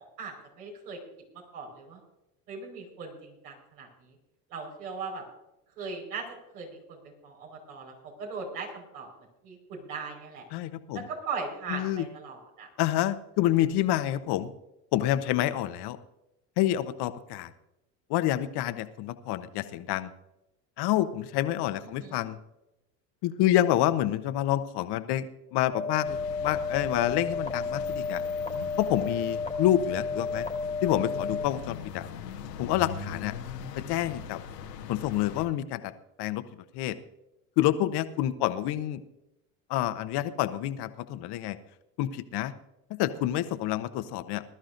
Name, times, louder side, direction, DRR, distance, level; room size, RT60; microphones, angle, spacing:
voice 1, 0.2-1.0 1.5-2.0 2.5-3.9 4.5-5.2 5.8-6.2 6.5-7.0 7.2-9.1 9.4-10.5 10.9-12.7 21.8-22.3, right 4 dB, 75° right, 0 dB, 5.0 m, -39 dB
voice 2, 10.5-11.1 11.7-12.1 12.8-14.5 14.9-16.0 16.6-17.5 18.1-20.1 20.8-22.4 23.2-25.3 25.5-28.2 28.8-30.5 30.8-32.0 32.6-33.3 33.9-34.4 34.9-35.9 36.2-36.4 36.7-37.0 37.6-39.0 39.7-41.6 42.0-42.5 42.9-44.4, left 13 dB, 50° left, 12 dB, 1.1 m, -28 dB
sound 1, 25.7-31.4, left 4 dB, 15° left, 1.6 m, -32 dB
sound 2, 26.0-35.5, left 6 dB, 80° left, 1.3 m, -41 dB
20.0 x 13.0 x 2.6 m, 0.91 s
hypercardioid pair, 75°, 49 cm